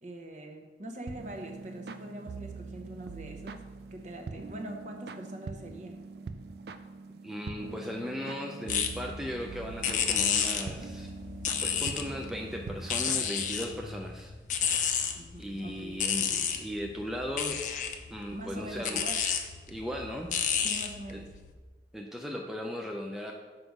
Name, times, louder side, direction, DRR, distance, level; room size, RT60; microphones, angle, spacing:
voice 1, 0.0-3.6 3.9-6.0 15.1-16.0 18.3-19.2 20.6-21.3, right 1 dB, 40° right, 3 dB, 0.8 m, -43 dB
sound 1, 1.1-13.9, right 4 dB, 65° right, 0.4 m, -43 dB
voice 2, 7.2-11.1 11.6-14.3 15.4-17.6 18.1-19.0 19.7-20.6 21.1-21.2 21.9-23.3, equal, 5° right, 0 dB, 0.4 m, -37 dB
sound 2, 8.7-21.5, left 7 dB, 45° left, 0.6 m, -32 dB
6.8 x 5.2 x 4.6 m, 1.3 s
head